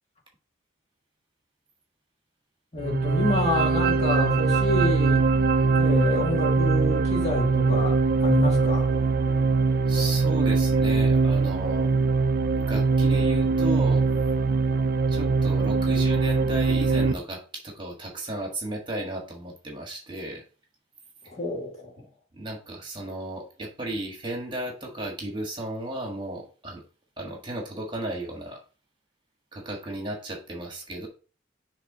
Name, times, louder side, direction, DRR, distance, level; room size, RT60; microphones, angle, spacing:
voice 1, 2.7-5.3 5.8-8.9 21.3-21.9, left 2 dB, 35° left, 2.3 m, -28 dB
sound 1, 2.8-17.1, right 4 dB, 50° right, 0.5 m, -22 dB
voice 2, 9.9-11.9 12.7-14.1 15.1-20.4 22.3-26.8 27.2-28.6 29.5-31.1, right 1 dB, 25° right, 1.6 m, -34 dB
6.6 x 3.5 x 5.0 m
head